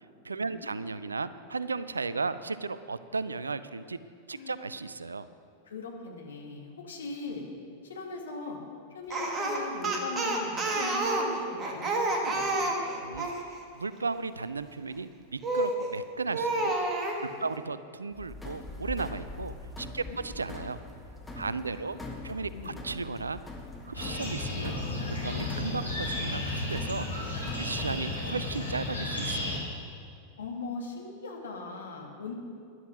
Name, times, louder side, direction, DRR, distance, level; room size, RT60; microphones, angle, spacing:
voice 1, 0.2-4.0 4.3-5.3 13.0-13.3 13.8-16.8 17.4-20.8 21.3-23.4 23.8-24.8 25.2-29.7, right 4 dB, 75° right, 15 dB, 0.4 m, -35 dB
voice 2, 5.7-7.5 7.8-8.6 8.9-12.9 17.2-17.5 19.9-20.2 21.6-22.8 30.4-32.3, left 3 dB, 65° left, 1 dB, 2.1 m, -40 dB
Speech, 9.1-13.4 15.4-15.9 16.3-17.2, right 2 dB, 25° right, 1.9 m, -29 dB
sound 1, 18.1-28.4, left 2 dB, 5° left, 1.7 m, -43 dB
sound 2, 23.9-29.6, left 2 dB, 85° left, 3.4 m, -33 dB
12.5 x 11.0 x 6.2 m, 2.2 s
figure-of-eight pair, 90°, 0 cm